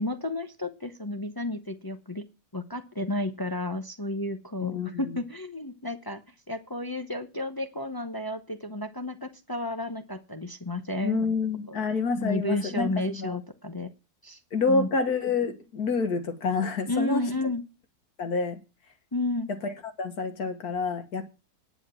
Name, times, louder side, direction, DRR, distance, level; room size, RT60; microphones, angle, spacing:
voice 1, 0.0-2.2 2.5-6.2 6.5-11.2 11.7-11.8 12.2-13.9 14.2-14.4 14.7-14.9 16.9-17.6 19.1-19.5, left 2 dB, 25° left, 0.5 m, -32 dB
voice 2, 4.6-5.0 11.0-13.4 14.5-17.3 18.2-18.6 19.6-19.7 20.0-21.3, left 4 dB, 75° left, 2.1 m, -28 dB
10.0 x 7.2 x 7.4 m
omnidirectional pair, 1.7 m